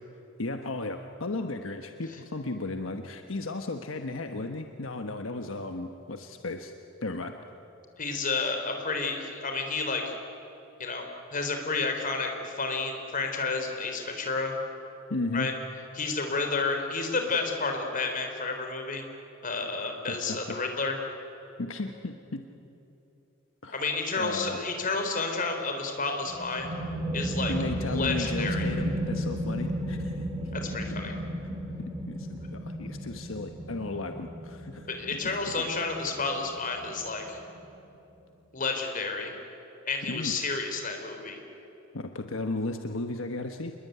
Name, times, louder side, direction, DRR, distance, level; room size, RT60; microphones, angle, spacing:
voice 1, 0.4-6.7 7.0-7.3 15.1-15.5 20.1-20.6 21.6-22.5 23.6-23.8 24.2-24.6 27.5-30.3 30.9-31.0 31.8-34.9 40.1-40.4 41.9-43.7, left 2 dB, 75° left, 6 dB, 1.2 m, -35 dB
voice 2, 8.0-10.1 10.8-11.0 11.3-14.5 15.3-15.5 15.9-19.0 19.4-21.0 23.7-26.7 27.1-27.5 27.9-28.7 30.5-31.1 34.9-37.4 38.5-39.3 39.9-41.4, left 4 dB, 40° left, 4 dB, 3.9 m, -30 dB
sound 1, 26.3-37.6, equal, 20° right, 1.9 m, -34 dB
27.0 x 21.5 x 9.5 m, 2.9 s
head